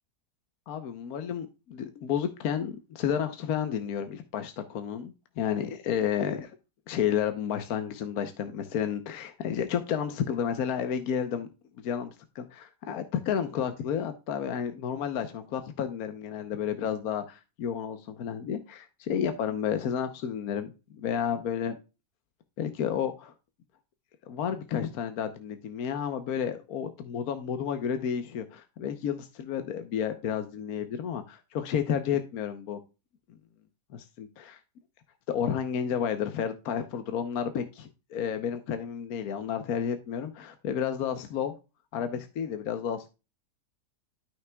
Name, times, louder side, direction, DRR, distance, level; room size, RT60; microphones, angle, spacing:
voice 1, 0.7-6.6 6.9-11.5 11.8-21.8 22.6-23.3 24.3-32.8 33.9-34.6 35.3-41.5 41.9-43.1, left 8 dB, 70° left, 8 dB, 1.2 m, -31 dB
12.5 x 5.9 x 2.2 m, 0.29 s
omnidirectional pair, 1.7 m